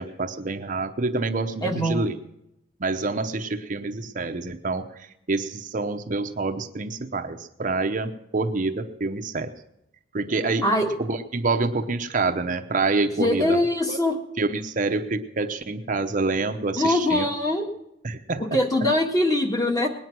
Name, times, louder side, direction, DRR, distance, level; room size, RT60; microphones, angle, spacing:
voice 1, 0.0-2.1 2.8-9.5 10.1-10.7 11.0-13.6 13.9-14.0 14.4-17.3 18.0-18.6, right 3 dB, 45° right, 7 dB, 0.7 m, -27 dB
voice 2, 1.6-2.1 10.6-10.9 13.2-14.2 16.8-17.7 18.4-19.9, left 1 dB, 20° left, 3 dB, 1.8 m, -22 dB
20.0 x 9.4 x 6.0 m, 0.85 s
head